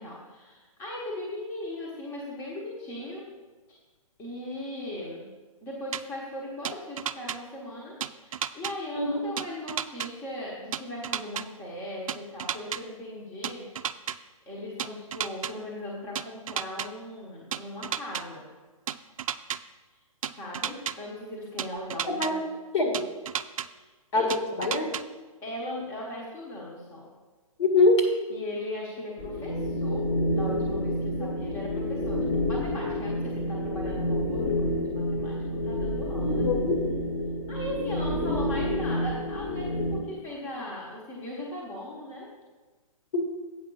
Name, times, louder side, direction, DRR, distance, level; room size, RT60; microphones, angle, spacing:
voice 1, 0.0-3.3 3.7-3.8 4.2-5.3 5.6-13.7 14.1-14.2 14.5-18.5 20.3-22.4 23.7-23.9 24.1-24.3 25.4-27.1 28.3-36.4 37.5-42.3, left 1 dB, 15° left, -4 dB, 1.2 m, -38 dB
sound 1, 5.9-6.0 6.6-7.4 8.0-8.7 9.4-10.1 10.7-11.4 12.1-12.8 13.4-14.2 14.8-15.5 16.2-16.9 17.5-18.2 18.9-19.6 20.2-20.9 21.6-22.3 22.9-23.7 24.3-25.0, right 9 dB, 65° right, 0.4 m, -32 dB
voice 2, 22.1-22.4 22.7-22.9 24.1-24.3 24.6-24.9 27.6-28.0 31.2-31.3 36.2-36.8 43.1-43.2, left 3 dB, 50° left, 1 dB, 2.0 m, -23 dB
sound 2, 29.2-40.0, left 1 dB, 35° left, 1.4 m, -29 dB
8.1 x 5.7 x 5.6 m, 1.3 s
hypercardioid pair, 160°, 18 cm